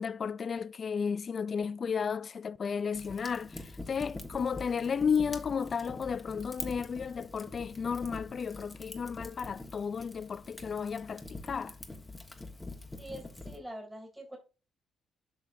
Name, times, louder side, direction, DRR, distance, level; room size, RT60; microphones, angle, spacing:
voice 1, 0.0-3.6 3.9-11.7, left 6 dB, 45° left, 0.3 m, -33 dB
Fire, 2.9-13.6, left 2 dB, 15° left, 1.3 m, -45 dB
voice 2, 13.0-14.4, equal, 10° right, 2.8 m, -44 dB
8.0 x 6.1 x 2.6 m
cardioid pair, 90°, 0 cm